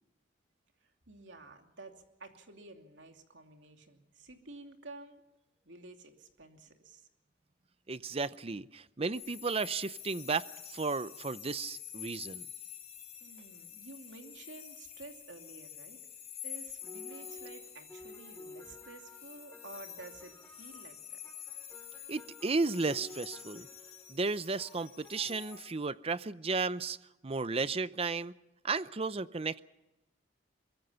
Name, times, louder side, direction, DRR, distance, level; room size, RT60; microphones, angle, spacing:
voice 1, 0.8-5.2 5.6-7.1 13.2-16.0 16.4-21.2, right 2 dB, 90° right, 4 dB, 2.8 m, -51 dB
voice 2, 7.9-12.5 22.1-23.7 24.1-27.0 27.2-28.3 28.6-29.6, right 4 dB, 35° right, 16 dB, 0.6 m, -34 dB
sound 1, 9.1-25.7, left 10 dB, 35° left, 5.9 m, -48 dB
sound 2, 16.8-25.7, left 1 dB, 10° left, 3.2 m, -53 dB
23.5 x 22.0 x 5.7 m, 0.98 s
head